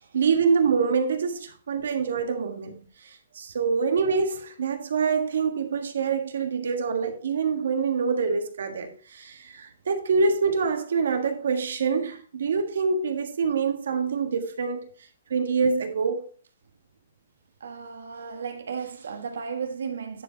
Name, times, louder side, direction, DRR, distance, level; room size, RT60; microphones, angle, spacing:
voice 1, 0.1-14.9 15.3-16.3, right 5 dB, 65° right, 1.5 m, -25 dB
voice 2, 17.6-20.2, right 6 dB, 80° right, 1.6 m, -34 dB
10.0 x 4.9 x 4.0 m
hypercardioid pair, 180°, 0 cm